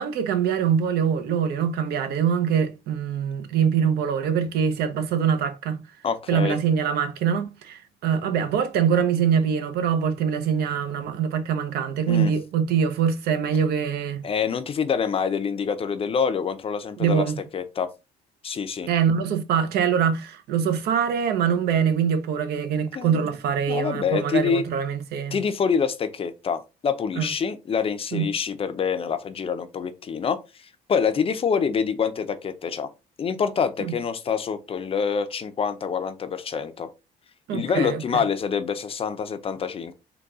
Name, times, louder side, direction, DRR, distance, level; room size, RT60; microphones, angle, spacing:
voice 1, 0.0-5.8 6.3-14.3 17.0-17.3 18.9-25.4 27.2-27.3 28.1-28.3 33.8-33.9 37.5-38.2, right 7 dB, 70° right, 0.7 m, -24 dB
voice 2, 6.0-6.6 12.1-12.3 14.2-17.3 17.5-17.9 18.4-18.9 22.9-23.3 23.7-24.6 25.3-30.4 30.9-32.9 33.2-36.9 37.5-39.9, left 6 dB, 35° left, 0.5 m, -26 dB
3.9 x 2.3 x 3.5 m
cardioid pair, 110°, 17 cm